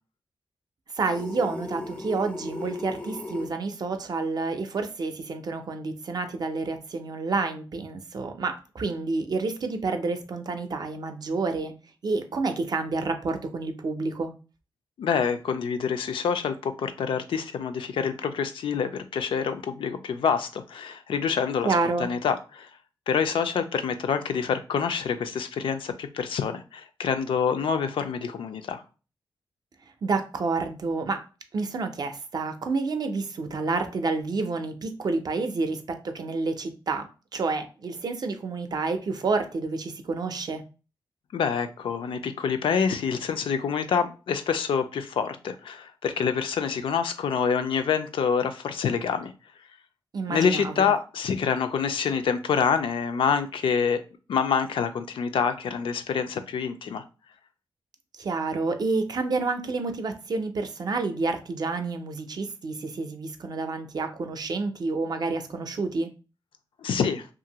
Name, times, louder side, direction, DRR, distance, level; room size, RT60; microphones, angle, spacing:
voice 1, 0.9-11.7 12.0-14.3 21.6-22.1 30.0-31.2 31.5-40.6 50.1-50.9 58.2-66.1, right 3 dB, 50° right, 0.5 m, -29 dB
sound 1, 1.1-3.5, left 2 dB, 10° left, 0.4 m, -36 dB
voice 2, 15.0-22.7 23.1-28.8 41.3-49.3 50.3-54.0 54.3-57.0 66.8-67.3, left 6 dB, 80° left, 0.4 m, -26 dB
2.6 x 2.5 x 2.8 m
wide cardioid pair, 100°, 9 cm